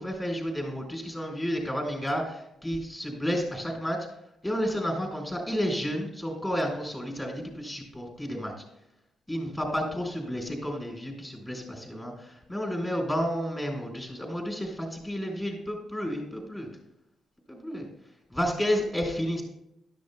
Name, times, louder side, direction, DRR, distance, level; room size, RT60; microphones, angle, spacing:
voice 1, 0.0-4.1 4.4-8.5 9.3-16.7 17.5-17.9 18.3-19.4, equal, 10° left, 1 dB, 4.2 m, -31 dB
15.5 x 12.5 x 2.2 m, 0.85 s
cardioid pair, 135°, 0 cm